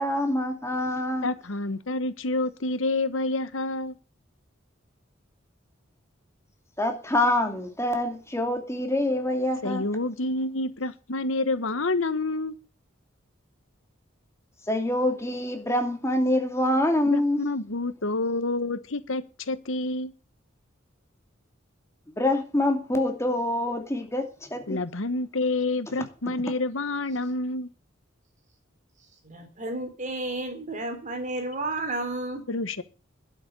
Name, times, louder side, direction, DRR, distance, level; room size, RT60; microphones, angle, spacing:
voice 1, 0.0-1.3 6.8-9.8 14.7-17.5 22.2-24.8, left 1 dB, 15° left, 2.6 m, -25 dB
voice 2, 1.2-3.9 9.6-12.5 17.1-20.1 24.7-27.7 32.5-32.8, left 2 dB, 85° left, 1.2 m, -28 dB
voice 3, 29.2-32.4, right 2 dB, 40° right, 3.9 m, -32 dB
12.0 x 7.9 x 8.4 m
head